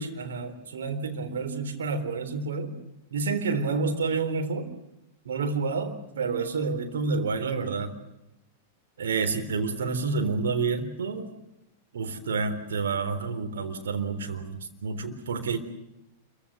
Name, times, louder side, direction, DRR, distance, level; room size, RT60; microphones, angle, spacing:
voice 1, 0.0-2.7 3.1-4.7 5.3-7.9 9.0-11.3 11.9-15.6, right 4 dB, 65° right, 6 dB, 3.7 m, -29 dB
27.0 x 24.0 x 6.5 m, 0.89 s
figure-of-eight pair, 95°, 0 cm